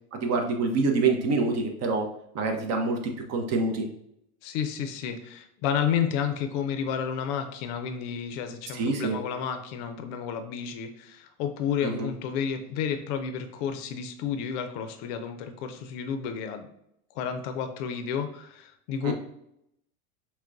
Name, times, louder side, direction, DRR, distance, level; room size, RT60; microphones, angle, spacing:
voice 1, 0.1-2.1 2.3-3.9 8.7-9.2 11.8-12.1 19.0-19.1, right 3 dB, 35° right, 3 dB, 0.7 m, -26 dB
voice 2, 4.4-16.7 17.1-19.1, left 7 dB, 50° left, 8 dB, 0.5 m, -31 dB
5.7 x 2.2 x 2.5 m, 0.76 s
hypercardioid pair, 110°, 45 cm